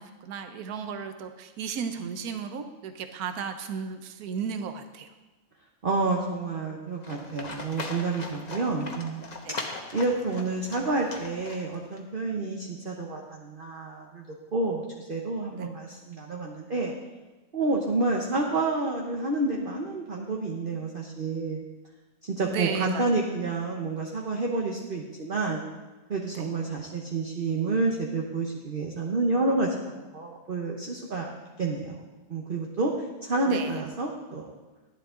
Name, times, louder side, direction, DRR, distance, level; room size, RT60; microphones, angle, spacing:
voice 1, 0.0-5.1 9.4-9.6 15.5-15.7 22.4-23.0 26.3-26.5 33.5-33.8, right 6 dB, 75° right, 7 dB, 1.3 m, -34 dB
voice 2, 5.8-9.6 9.9-14.2 14.5-16.9 17.5-21.6 22.2-25.6 26.1-31.3 31.6-32.0 32.3-32.9 33.2-34.5, right 3 dB, 40° right, 0 dB, 1.1 m, -29 dB
Livestock farm animals working animals, 7.0-12.0, left 3 dB, 30° left, 1.1 m, -39 dB
12.0 x 11.0 x 3.8 m, 1.2 s
omnidirectional pair, 1.6 m